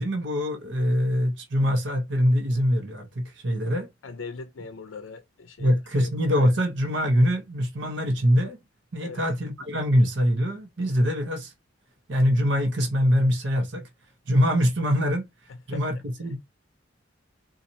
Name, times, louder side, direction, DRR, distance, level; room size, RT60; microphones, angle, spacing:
voice 1, 0.0-3.9 5.6-8.6 8.9-11.5 12.1-13.8 14.3-15.3 15.7-16.4, equal, 60° right, 0.8 m, -23 dB
voice 2, 4.0-6.1 9.0-9.2 15.5-15.9, left 4 dB, 80° left, 0.5 m, -40 dB
4.2 x 2.4 x 2.6 m
head